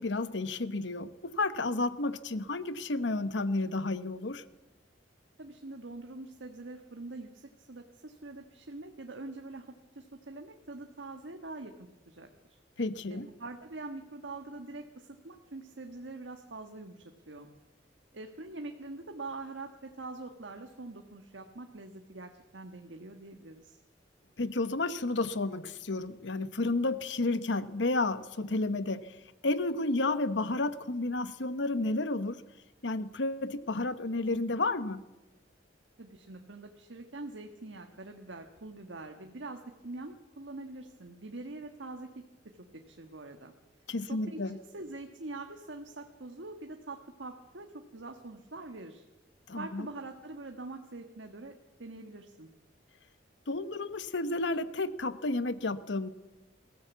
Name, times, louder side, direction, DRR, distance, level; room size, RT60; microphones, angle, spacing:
voice 1, 0.0-4.4 12.8-13.3 24.4-32.4 32.8-35.0 43.9-44.6 49.5-49.9 53.5-56.1, left 2 dB, 75° left, 13 dB, 1.0 m, -31 dB
voice 2, 5.4-12.6 13.1-17.5 18.1-23.8 36.0-42.1 42.7-43.5 44.1-49.0 49.6-51.5 51.8-52.5, right 2 dB, 90° right, 4 dB, 1.5 m, -44 dB
22.0 x 15.0 x 8.2 m, 1.1 s
head